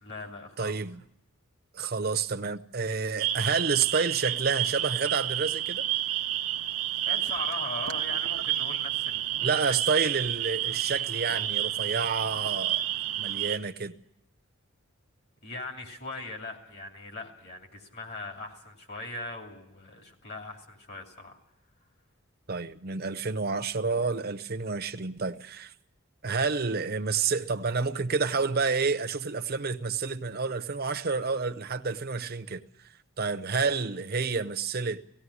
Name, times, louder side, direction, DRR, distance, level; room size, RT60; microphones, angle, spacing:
voice 1, 0.0-0.8 7.1-9.5 15.4-21.4, left 2 dB, 50° left, 2.7 m, -40 dB
voice 2, 0.6-1.0 1.7-5.9 9.4-12.8 13.2-14.0 22.5-25.7 26.2-32.6 33.2-35.0, right 4 dB, 45° right, 0.8 m, -29 dB
sound 1, 3.2-13.6, right 12 dB, 80° right, 0.8 m, -30 dB
18.0 x 16.0 x 9.7 m
head